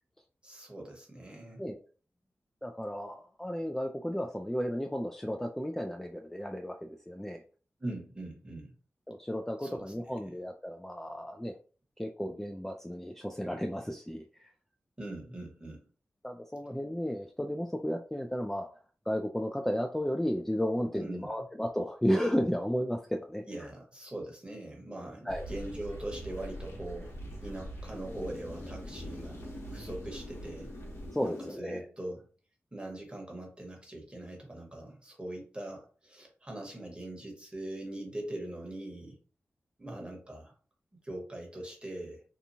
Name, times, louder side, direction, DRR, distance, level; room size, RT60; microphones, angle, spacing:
voice 1, 0.4-1.6 7.8-8.7 9.6-9.9 15.0-15.8 20.9-21.3 23.5-29.4 29.7-30.7 31.2-32.2 32.7-39.2 39.8-40.5 41.0-42.2, right 1 dB, 20° right, 0 dB, 1.2 m, -42 dB
voice 2, 2.6-7.4 9.1-11.6 12.0-14.5 16.2-18.7 19.1-23.4 25.2-25.5 31.1-31.9, equal, 5° left, 3 dB, 0.4 m, -33 dB
sound 1, 25.3-31.5, equal, 70° left, 1.1 m, -42 dB
2.9 x 2.3 x 2.7 m, 0.39 s
cardioid pair, 45°, 5 cm